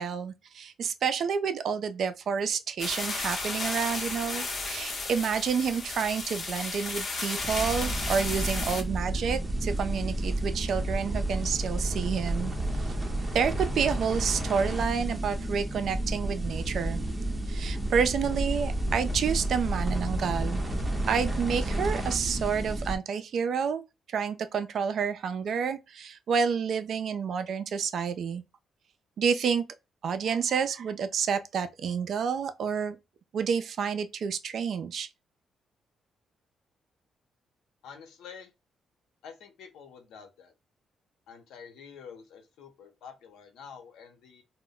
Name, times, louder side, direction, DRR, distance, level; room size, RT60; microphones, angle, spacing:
voice 1, 0.0-12.5 12.8-12.9 13.3-17.0 17.5-20.6 21.1-23.8 24.1-28.4 29.2-29.6 30.0-33.0 33.3-35.1, right 6 dB, 65° right, 0.4 m, -29 dB
sound 1, 2.8-8.8, left 3 dB, 45° left, 0.8 m, -33 dB
sound 2, 7.4-23.0, right 1 dB, 20° right, 0.8 m, -31 dB
voice 2, 37.8-38.5 39.2-40.5 41.3-44.4, left 6 dB, 85° left, 0.7 m, -48 dB
2.1 x 2.1 x 3.7 m
cardioid pair, 80°, 0 cm